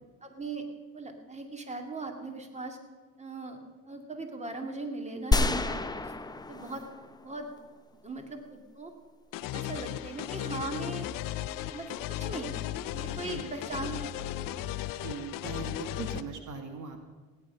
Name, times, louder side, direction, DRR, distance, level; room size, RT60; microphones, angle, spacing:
voice 1, 0.2-0.6 0.9-2.8 3.2-3.6 3.9-6.1 6.5-6.8 7.2-7.5 8.0-8.9 9.5-11.1 11.7-12.6 12.9-14.3, right 3 dB, 20° right, 4 dB, 2.4 m, -39 dB
sound 1, 5.3-7.6, left 2 dB, 10° left, 0.7 m, -29 dB
sound 2, 9.3-16.2, left 13 dB, 75° left, 0.7 m, -36 dB
voice 2, 13.1-13.5 14.9-17.0, right 5 dB, 60° right, 6 dB, 1.7 m, -40 dB
17.0 x 9.9 x 5.6 m, 1.4 s
supercardioid pair, 85°, 33 cm